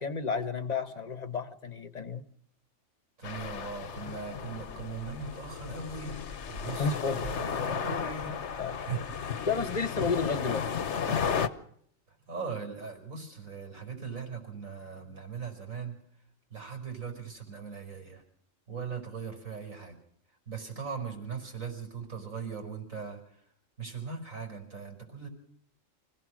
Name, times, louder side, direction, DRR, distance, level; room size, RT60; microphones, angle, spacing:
voice 1, 0.0-2.2 6.8-7.3 8.6-8.7 9.5-10.7, left 4 dB, 35° left, 12 dB, 1.2 m, -31 dB
sound 1, 3.2-11.5, left 7 dB, 60° left, 1.3 m, -34 dB
voice 2, 3.2-6.2 6.5-9.2 11.1-11.6 12.1-16.0 16.5-18.2 18.7-20.0 20.5-23.4 23.8-25.3, right 5 dB, 85° right, 4 dB, 5.3 m, -39 dB
25.5 x 16.5 x 6.3 m, 0.66 s
omnidirectional pair, 1.4 m